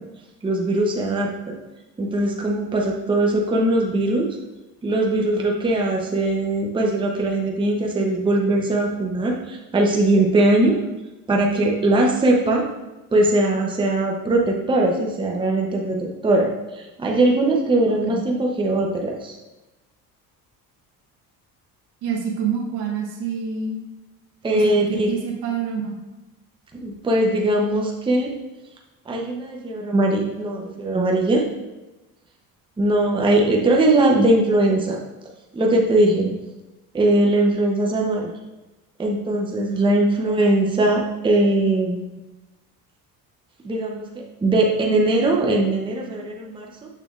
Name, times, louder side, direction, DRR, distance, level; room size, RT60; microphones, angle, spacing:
voice 1, 0.4-1.5 2.0-4.3 4.8-10.8 11.3-12.6 13.1-19.3 24.4-25.1 26.7-28.3 29.1-31.4 32.8-35.0 35.5-36.4 36.9-38.3 39.0-42.2 43.6-46.9, right 2 dB, 15° right, -1 dB, 0.7 m, -20 dB
voice 2, 17.9-18.2 22.0-23.8 24.5-26.0, right 6 dB, 80° right, -1 dB, 1.2 m, -27 dB
6.6 x 6.0 x 2.4 m, 1.1 s
cardioid pair, 130°, 38 cm